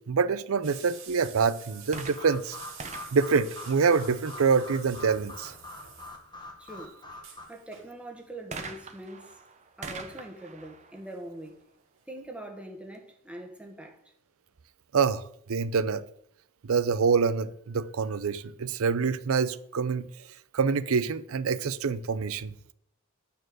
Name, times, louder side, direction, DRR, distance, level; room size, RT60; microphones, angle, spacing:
voice 1, 0.1-2.6 3.1-5.5 14.9-15.2 15.5-16.0 16.6-20.1 20.5-22.5, right 5 dB, 90° right, 0.5 m, -26 dB
sound 1, 0.6-6.5 6.8-6.9 7.1-8.0 9.0-9.3 9.9-11.2 11.4-11.5 12.0-12.1, right 7 dB, 65° right, 2.3 m, -49 dB
sound 2, 1.9-7.4, left 2 dB, 20° left, 1.4 m, -44 dB
sound 3, 1.9-4.4 8.5-12.1 12.9-13.0, right 4 dB, 35° right, 1.0 m, -44 dB
voice 2, 6.6-7.0 7.5-9.4 9.8-11.6 12.1-14.0, right 1 dB, 5° right, 1.4 m, -43 dB
9.2 x 4.4 x 6.2 m
head